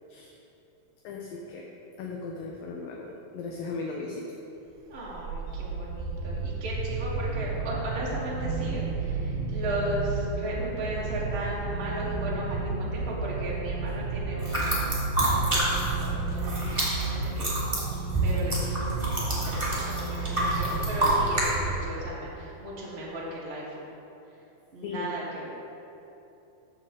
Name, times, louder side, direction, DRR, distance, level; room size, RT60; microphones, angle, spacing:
voice 1, 1.0-1.7 2.0-4.3 5.5-5.6 24.8-25.1, left 4 dB, 75° left, -1 dB, 2.3 m, -37 dB
voice 2, 4.9-15.0 15.2-16.5 17.1-17.5 18.2-18.5 18.8-19.1 19.4-19.8 20.1-23.9 24.7-25.5, right 1 dB, 55° right, -6 dB, 0.7 m, -36 dB
sound 1, 4.9-22.3, right 3 dB, 80° right, 2.2 m, -32 dB
sound 2, 14.4-16.1 16.3-21.5, right 1 dB, 10° right, 1.5 m, -28 dB
14.0 x 6.6 x 3.7 m, 2.9 s
omnidirectional pair, 4.4 m